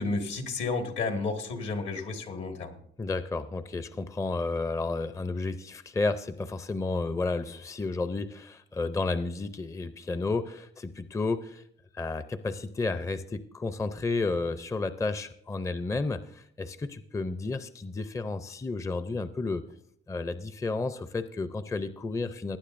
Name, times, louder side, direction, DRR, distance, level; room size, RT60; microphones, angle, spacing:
voice 1, 0.0-2.8, left 3 dB, 75° left, 5 dB, 1.7 m, -31 dB
voice 2, 3.0-11.6 11.9-19.7 20.1-22.6, left 3 dB, 15° left, 12 dB, 0.5 m, -32 dB
18.5 x 9.5 x 2.6 m, 0.69 s
cardioid pair, 90°, 20 cm